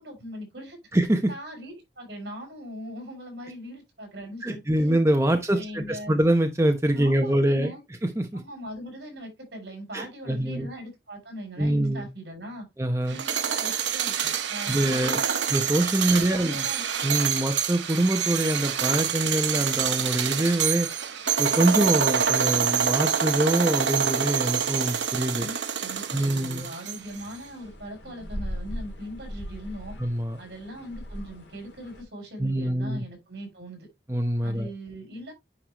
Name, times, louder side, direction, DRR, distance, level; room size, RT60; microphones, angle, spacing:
voice 1, 0.0-0.8 1.3-4.9 5.5-6.2 6.9-7.8 8.3-12.7 13.1-15.4 16.0-16.8 25.3-30.0 30.4-33.9 34.4-35.3, equal, 70° right, 5.5 m, -40 dB
voice 2, 4.4-7.7 8.0-8.4 9.9-10.7 11.6-12.1 12.8-13.2 14.7-15.2 15.5-16.6 17.0-20.9 21.4-25.5 26.1-26.7 30.0-30.4 32.4-33.0 34.1-34.7, right 1 dB, 15° right, 0.8 m, -24 dB
sound 1, 13.1-27.2, right 8 dB, 90° right, 1.0 m, -27 dB
sound 2, 27.0-32.0, equal, 80° left, 2.3 m, -39 dB
9.9 x 4.8 x 3.0 m
head